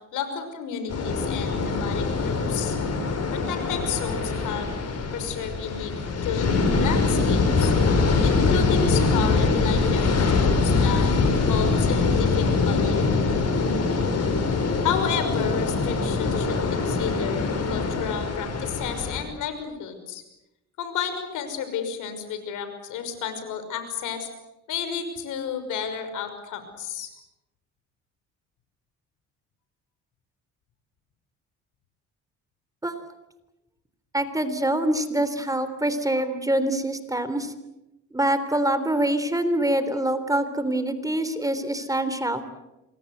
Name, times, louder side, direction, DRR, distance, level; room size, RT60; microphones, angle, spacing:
voice 1, 0.1-2.8 3.3-4.7 5.1-7.7 8.2-11.1 11.4-13.1 14.8-20.2 20.8-24.3 24.7-27.1, left 7 dB, 85° left, 8 dB, 5.9 m, -32 dB
sound 1, 0.9-19.2, left 4 dB, 55° left, 6.9 m, -23 dB
voice 2, 34.1-37.5 38.1-42.4, right 1 dB, 10° right, 11 dB, 3.5 m, -25 dB
27.5 x 23.0 x 8.1 m, 0.93 s
cardioid pair, 90°, 30 cm